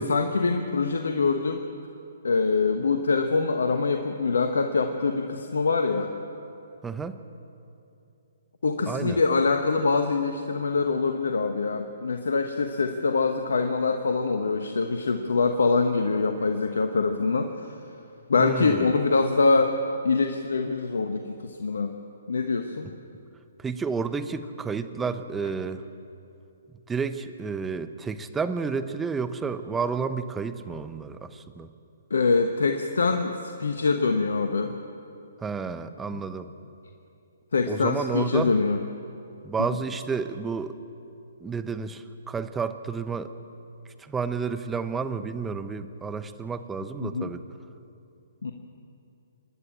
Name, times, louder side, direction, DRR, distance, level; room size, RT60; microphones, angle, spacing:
voice 1, 0.0-1.6 2.2-6.1 8.6-17.8 18.3-21.9 22.3-22.9 32.1-34.7 37.5-38.8 47.0-47.3 48.4-48.5, left 4 dB, 70° left, 6 dB, 1.2 m, -24 dB
voice 2, 6.8-7.2 8.9-9.2 18.4-18.9 23.6-25.8 26.9-31.7 35.4-36.5 37.7-38.6 39.4-40.8 41.4-43.3 44.0-47.4, right 5 dB, 10° right, 10 dB, 0.9 m, -31 dB
26.5 x 11.0 x 8.8 m, 2.7 s
figure-of-eight pair, 130°, 0 cm